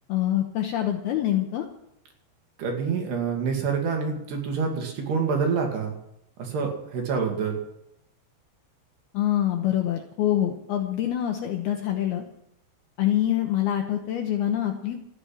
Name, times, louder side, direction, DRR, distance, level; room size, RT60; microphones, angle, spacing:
voice 1, 0.1-1.7 9.1-12.2 13.0-15.0, left 12 dB, 75° left, 4 dB, 2.4 m, -25 dB
voice 2, 2.6-5.9 6.4-7.6, right 5 dB, 60° right, 2 dB, 4.2 m, -27 dB
14.5 x 10.0 x 8.7 m, 0.80 s
omnidirectional pair, 5.7 m